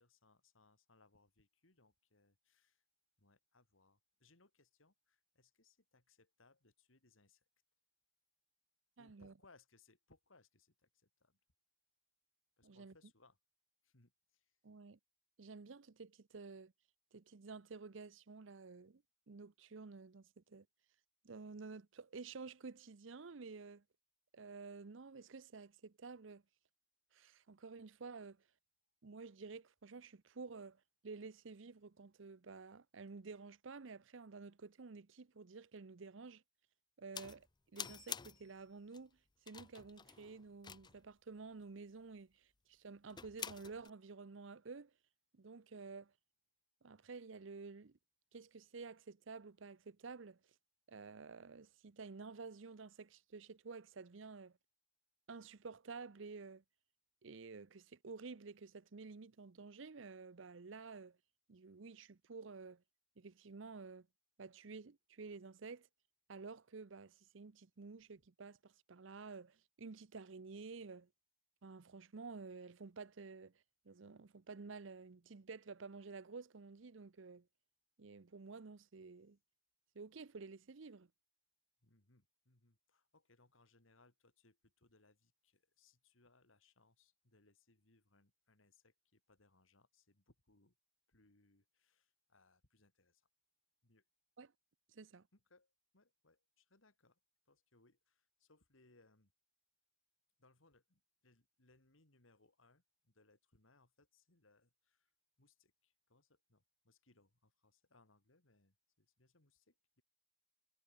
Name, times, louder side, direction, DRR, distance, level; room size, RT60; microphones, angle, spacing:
voice 1, 0.0-2.8 3.2-7.5 9.0-11.4 12.6-13.4 13.8-14.6 81.8-90.8 91.1-93.3 93.8-94.1 95.3-97.2 97.4-99.3 100.4-105.1 105.4-110.0, left 3 dB, 80° left, 3.4 m, -71 dB
voice 2, 9.0-9.3 12.6-12.9 14.6-15.0 15.4-16.7 17.1-20.7 21.2-23.8 24.3-26.4 27.1-28.4 29.0-36.4 37.0-37.5 37.7-39.2 39.5-44.9 45.3-46.1 46.8-48.0 48.3-50.4 50.9-54.6 55.3-56.6 57.2-61.2 61.5-62.8 63.2-64.1 64.4-65.9 66.3-71.1 71.6-73.5 73.8-77.5 78.0-79.4 79.9-81.1 94.4-94.5 94.9-95.3, right 4 dB, 70° right, 0.7 m, -51 dB
sound 1, 37.1-37.4 37.7-38.5 38.9-39.0 39.5-41.1 43.1-43.9, left 7 dB, 20° left, 0.6 m, -48 dB
head